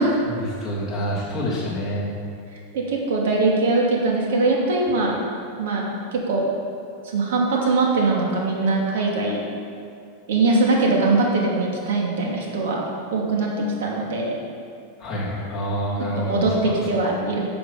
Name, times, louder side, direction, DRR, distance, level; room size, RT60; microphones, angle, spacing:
voice 1, 0.2-2.1 15.0-16.9, equal, 10° left, -9 dB, 3.0 m, -27 dB
voice 2, 2.7-5.1 5.6-6.5 7.0-9.4 10.3-12.8 13.1-14.4 16.2-17.4, right 3 dB, 80° right, -2 dB, 2.5 m, -21 dB
12.0 x 6.8 x 5.7 m, 2.4 s
supercardioid pair, 165°, 0 cm